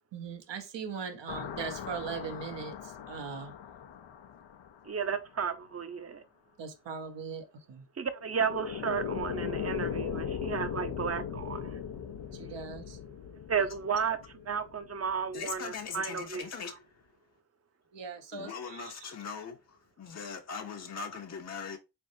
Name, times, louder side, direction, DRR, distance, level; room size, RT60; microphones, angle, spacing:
voice 1, 0.1-3.5 6.6-7.9 12.4-13.0 17.9-19.1, right 5 dB, 80° right, 0.9 m, -40 dB
sound 1, 1.3-5.2 8.2-15.4, left 8 dB, 90° left, 0.6 m, -39 dB
voice 2, 4.9-6.2 8.0-11.7 13.5-14.2 14.5-16.4, right 6 dB, 35° right, 0.6 m, -33 dB
voice 3, 15.3-16.9 18.3-21.8, left 6 dB, 40° left, 0.6 m, -40 dB
4.0 x 3.4 x 2.6 m
cardioid pair, 55°, 43 cm